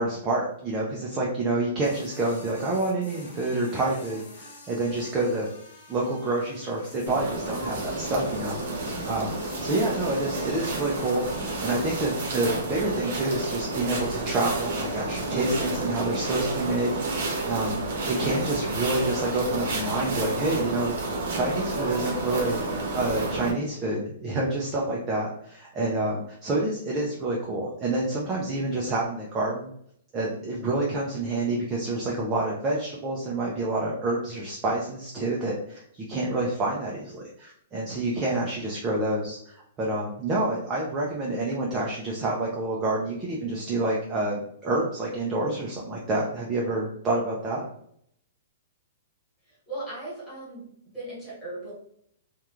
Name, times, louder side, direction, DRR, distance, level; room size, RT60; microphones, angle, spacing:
voice 1, 0.0-5.5 5.9-11.2 11.6-20.9 21.3-22.6 22.9-29.7 30.1-47.6, right 2 dB, 15° right, -3 dB, 0.3 m, -28 dB
sound 1, 1.8-12.0, left 2 dB, 60° left, 1.0 m, -47 dB
sound 2, 7.1-23.5, right 2 dB, 50° right, 0.7 m, -30 dB
voice 2, 49.5-50.6 50.9-51.7, right 2 dB, 5° left, -10 dB, 1.2 m, -37 dB
3.0 x 2.2 x 2.3 m, 0.68 s
hypercardioid pair, 180°, 0 cm